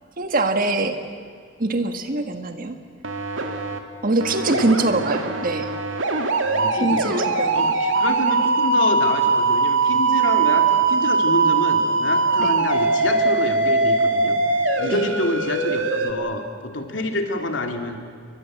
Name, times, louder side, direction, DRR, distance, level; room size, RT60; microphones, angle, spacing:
voice 1, 0.2-1.0 1.6-2.8 4.0-5.7 6.7-7.7 12.4-12.5 14.9-15.1, right 2 dB, 45° right, 7 dB, 1.5 m, -23 dB
sound 1, 3.0-3.8 4.2-16.1, right 3 dB, 75° right, 2.4 m, -21 dB
voice 2, 4.3-4.7 6.4-7.0 7.5-14.4 14.8-18.0, left 2 dB, 70° left, 4 dB, 2.9 m, -27 dB
29.5 x 23.5 x 7.7 m, 2.2 s
head